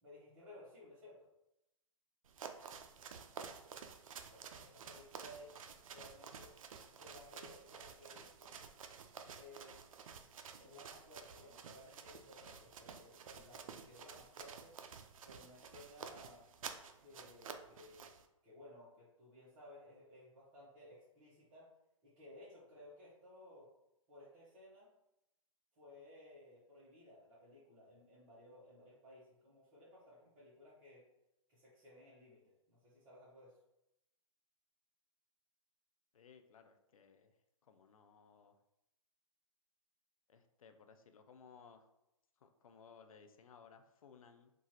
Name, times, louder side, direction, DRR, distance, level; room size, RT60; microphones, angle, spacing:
voice 1, 0.0-1.3 4.3-5.6 5.9-6.5 6.9-8.5 9.3-9.7 10.6-14.7 15.2-16.4 17.0-18.1 18.4-21.7 22.0-23.7 24.1-24.9 25.8-31.0 31.5-33.6, left 1 dB, 25° right, -10 dB, 0.9 m, -58 dB
sound 1, 2.3-18.3, right 6 dB, 75° right, 0.4 m, -52 dB
voice 2, 36.1-37.3 37.6-38.6 40.3-41.9 42.4-44.5, left 6 dB, 85° left, 7 dB, 0.4 m, -61 dB
2.9 x 2.4 x 2.7 m, 0.87 s
hypercardioid pair, 145°, 18 cm